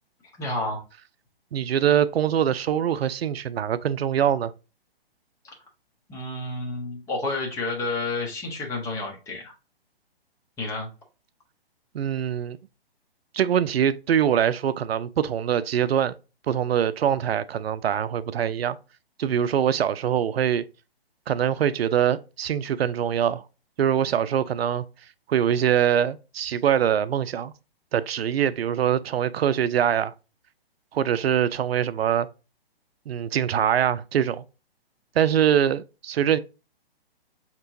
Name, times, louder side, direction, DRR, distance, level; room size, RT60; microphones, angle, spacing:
voice 1, 0.4-0.8 5.4-5.5 6.1-9.5 10.6-10.9, left 2 dB, 10° left, 0.8 m, -30 dB
voice 2, 1.5-4.5 11.9-12.6 13.3-16.1 16.5-18.8 19.2-20.6 21.3-23.4 23.8-24.8 25.3-27.5 27.9-30.1 30.9-32.3 33.1-34.4 35.2-36.4, right 9 dB, 80° right, 0.5 m, -23 dB
5.5 x 3.0 x 2.6 m
hypercardioid pair, 140°, 30 cm